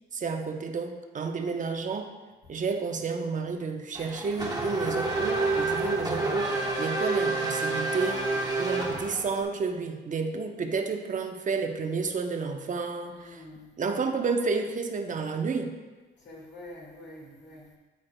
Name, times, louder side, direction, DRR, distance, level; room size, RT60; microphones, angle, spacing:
voice 1, 0.1-2.1 2.5-13.4 13.8-15.8, right 4 dB, 40° right, 5 dB, 0.8 m, -31 dB
Race car auto racing / Accelerating revving vroom, 3.9-9.4, right 3 dB, 20° right, 1.6 m, -29 dB
voice 2, 8.5-8.9 13.1-13.7 16.2-17.7, left 1 dB, 60° left, -4 dB, 2.0 m, -47 dB
13.0 x 4.7 x 2.2 m, 1.3 s
cardioid pair, 90°, 20 cm